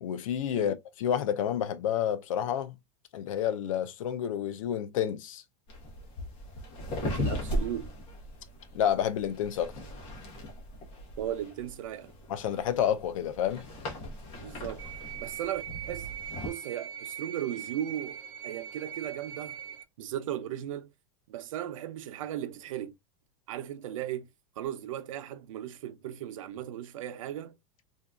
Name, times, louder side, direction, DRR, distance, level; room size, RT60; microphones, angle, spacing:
voice 1, 0.0-2.7 3.1-5.4 8.7-9.7 12.3-13.6, left 9 dB, 85° left, 0.6 m, -29 dB
sound 1, 5.7-16.5, left 1 dB, 35° left, 1.1 m, -38 dB
voice 2, 7.0-7.9 11.2-12.1 14.4-14.8 15.2-16.1 16.4-18.2 18.4-19.6 20.0-20.9 21.3-23.0 23.5-24.3 24.6-27.5, right 11 dB, 85° right, 0.7 m, -36 dB
sound 2, 14.8-19.8, right 9 dB, 25° right, 0.5 m, -41 dB
3.8 x 2.7 x 2.3 m
supercardioid pair, 160°, 17 cm